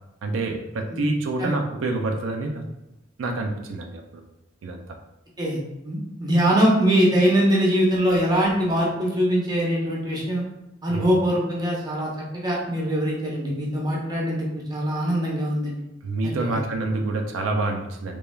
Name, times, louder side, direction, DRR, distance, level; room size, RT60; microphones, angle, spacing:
voice 1, 0.2-2.7 3.2-4.2 4.6-4.8 10.9-11.1 16.0-18.2, right 2 dB, 85° right, 3 dB, 0.4 m, -27 dB
voice 2, 5.4-10.4 10.8-15.8 16.2-16.6, equal, 20° right, -3 dB, 0.6 m, -22 dB
3.0 x 2.3 x 2.2 m, 0.91 s
head